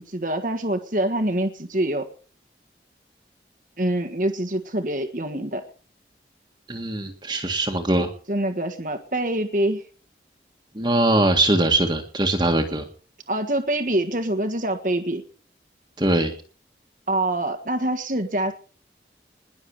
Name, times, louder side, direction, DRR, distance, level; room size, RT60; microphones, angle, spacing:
voice 1, 0.0-2.1 3.8-5.6 8.3-9.8 13.3-15.2 17.1-18.5, right 1 dB, 50° right, 6 dB, 1.6 m, -25 dB
voice 2, 6.7-8.1 10.8-12.8 16.0-16.3, right 1 dB, 25° right, 3 dB, 1.8 m, -21 dB
21.0 x 7.2 x 8.3 m, 0.42 s
head